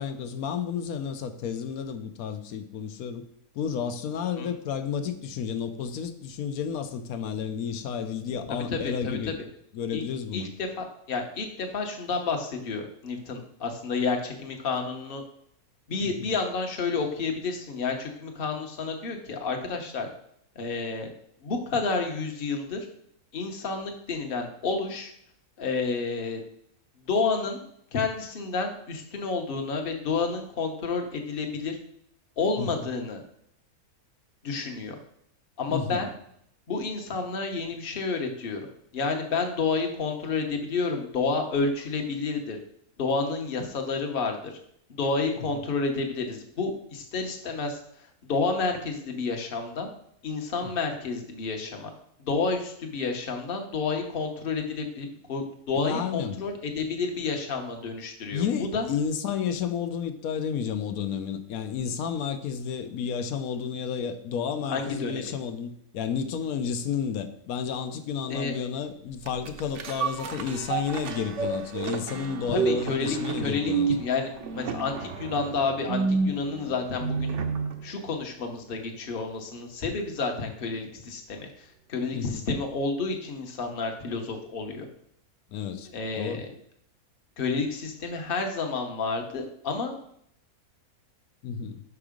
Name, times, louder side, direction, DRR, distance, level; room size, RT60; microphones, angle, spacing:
voice 1, 0.0-3.3 3.5-9.4 9.7-10.5 16.0-16.3 32.6-32.9 35.7-36.1 50.6-50.7 55.7-56.4 58.3-73.9 82.1-82.4 85.5-85.9 86.2-86.4 91.4-91.8, left 7 dB, 75° left, 10 dB, 1.1 m, -31 dB
voice 2, 8.7-9.2 9.9-10.0 10.3-15.2 15.9-20.1 20.5-21.1 21.4-22.9 23.3-25.1 25.6-26.4 27.1-27.6 27.9-31.8 32.4-33.2 34.4-35.0 35.6-36.1 36.7-38.6 38.9-42.6 43.0-44.6 44.9-47.8 48.2-49.9 50.2-51.9 52.2-58.4 58.7-58.9 64.7-65.2 68.3-68.5 72.5-73.7 74.0-77.4 77.8-84.9 85.9-86.5 87.4-89.9, left 4 dB, 40° left, 3 dB, 1.1 m, -30 dB
sound 1, 69.2-77.8 78.2-78.3, right 5 dB, 60° right, 0.9 m, -30 dB
6.0 x 4.7 x 5.0 m, 0.68 s
omnidirectional pair, 1.6 m